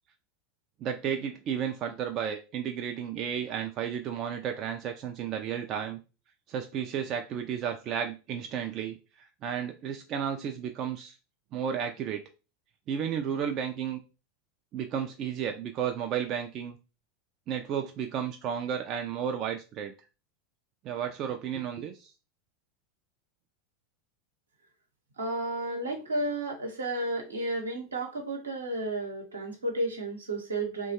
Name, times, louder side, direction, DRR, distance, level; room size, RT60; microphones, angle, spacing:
voice 1, 0.8-6.0 6.5-11.1 11.5-12.2 12.9-14.0 14.7-16.8 17.5-19.9 20.8-22.1, right 8 dB, 40° right, 5 dB, 0.3 m, -33 dB
voice 2, 25.2-30.9, right 2 dB, 80° right, 2 dB, 0.8 m, -32 dB
3.0 x 2.2 x 2.8 m, 0.31 s
figure-of-eight pair, 85°, 0 cm